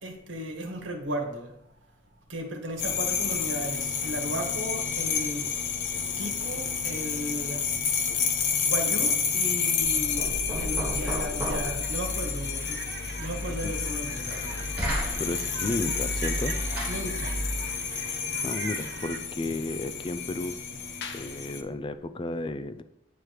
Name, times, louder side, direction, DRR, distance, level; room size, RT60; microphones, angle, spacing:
voice 1, 0.0-1.5 2.3-5.5 6.2-7.6 8.0-8.1 8.4-10.3 10.6-12.8 13.1-14.6 16.9-17.4, equal, 85° right, 3 dB, 1.3 m, -35 dB
sound 1, 2.8-21.6, left 6 dB, 65° left, 0.7 m, -30 dB
Knock, 9.8-17.7, equal, 10° right, 1.5 m, -34 dB
sound 2, 11.8-19.2, right 5 dB, 55° right, 0.8 m, -42 dB
voice 2, 15.2-16.6 18.4-20.6 21.1-22.8, left 2 dB, 25° left, 11 dB, 0.3 m, -33 dB
9.1 x 3.3 x 4.5 m, 0.80 s
head